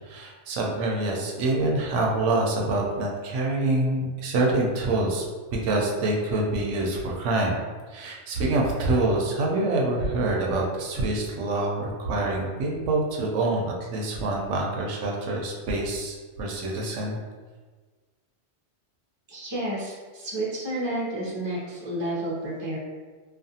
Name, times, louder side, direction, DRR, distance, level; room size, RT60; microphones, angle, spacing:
voice 1, 0.0-5.2 5.5-7.6 7.9-17.2, right 2 dB, 85° right, -1 dB, 0.9 m, -26 dB
voice 2, 19.3-22.8, right 1 dB, 30° right, -6 dB, 0.6 m, -30 dB
2.4 x 2.4 x 2.7 m, 1.4 s
omnidirectional pair, 1.2 m